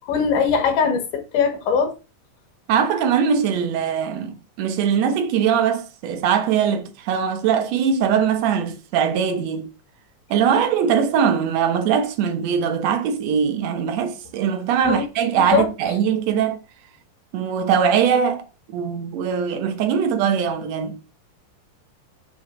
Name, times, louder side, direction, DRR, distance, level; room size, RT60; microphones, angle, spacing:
voice 1, 0.1-1.9 14.8-15.1 15.4-15.7, left 6 dB, 75° left, 2.7 m, -21 dB
voice 2, 2.7-9.7 10.3-16.6 17.3-21.0, right 7 dB, 70° right, 1.9 m, -21 dB
6.5 x 3.1 x 4.9 m
omnidirectional pair, 3.7 m